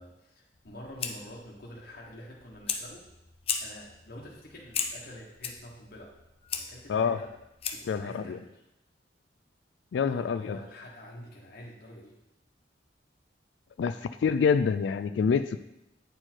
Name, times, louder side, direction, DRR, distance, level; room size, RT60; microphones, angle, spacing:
voice 1, 0.0-3.1 3.6-6.1 6.6-7.3 7.7-8.6 10.0-12.2, left 1 dB, 55° left, -3 dB, 1.2 m, -47 dB
Fire, 0.5-8.0, left 6 dB, 30° left, 0.6 m, -38 dB
voice 2, 7.9-8.4 9.9-10.6 13.8-15.6, left 6 dB, 75° left, 11 dB, 0.3 m, -26 dB
9.2 x 4.5 x 4.4 m, 0.87 s
head